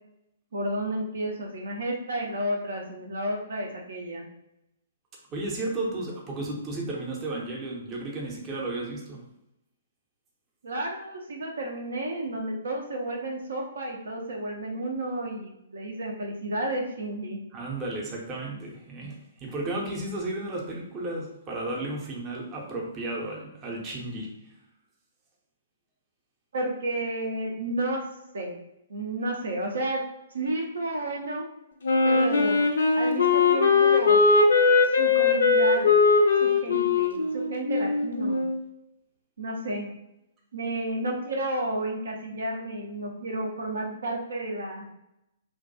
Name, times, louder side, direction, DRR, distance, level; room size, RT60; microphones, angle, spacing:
voice 1, 0.5-4.3 10.6-17.4 26.5-28.0 28.3-28.6 28.9-30.0 30.3-31.5 32.0-32.6 33.0-34.2 34.9-35.9 36.4-38.5 39.4-39.9 40.5-44.9, right 1 dB, 70° right, -1 dB, 0.4 m, -31 dB
voice 2, 5.3-9.2 17.5-19.2 19.4-24.3, right 2 dB, 25° right, -2 dB, 0.6 m, -33 dB
Wind instrument woodwind instrument, 31.8-38.6, left 4 dB, 65° left, 0.3 m, -20 dB
2.2 x 2.2 x 2.6 m, 0.86 s
figure-of-eight pair, 120°, 0 cm